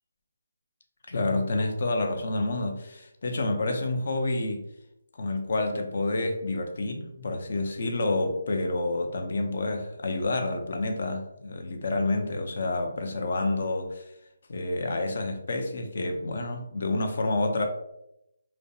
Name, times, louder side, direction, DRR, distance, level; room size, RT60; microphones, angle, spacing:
voice 1, 1.1-4.6 5.2-14.1 14.5-17.7, left 2 dB, 55° left, 4 dB, 0.5 m, -28 dB
2.4 x 2.0 x 2.6 m, 0.82 s
figure-of-eight pair, 160°, 0 cm